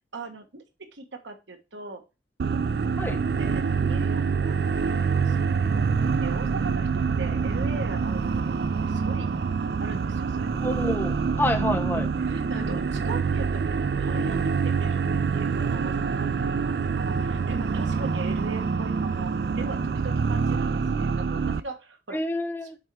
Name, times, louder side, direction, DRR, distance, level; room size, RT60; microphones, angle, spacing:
voice 1, 0.1-0.6 0.9-2.0 3.4-4.7 5.0-8.5 8.8-9.4 9.8-10.6 11.8-22.2, right 3 dB, 85° right, 6 dB, 1.4 m, -39 dB
sound 1, 2.4-21.6, right 5 dB, 60° right, 0.3 m, -26 dB
voice 2, 10.6-12.0 22.1-22.8, left 1 dB, 10° left, 2 dB, 1.1 m, -28 dB
6.6 x 4.3 x 4.7 m, 0.27 s
head